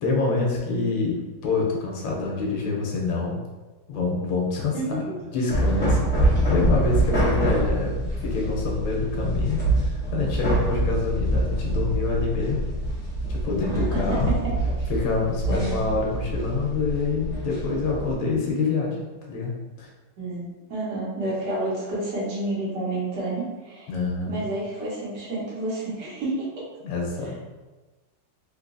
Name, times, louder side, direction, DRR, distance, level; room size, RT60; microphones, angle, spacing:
voice 1, 0.0-3.4 3.9-12.6 13.3-14.3 14.9-19.5 19.8-19.9 23.9-24.4 26.8-27.3, left 3 dB, 85° left, -2 dB, 1.5 m, -26 dB
sound 1, 5.5-18.1, right 1 dB, 40° left, 1.4 m, -25 dB
voice 2, 13.7-14.8 15.5-15.7 20.2-23.9 24.3-26.4, right 2 dB, 70° right, -7 dB, 1.7 m, -30 dB
3.8 x 2.6 x 2.5 m, 1.2 s
omnidirectional pair, 2.0 m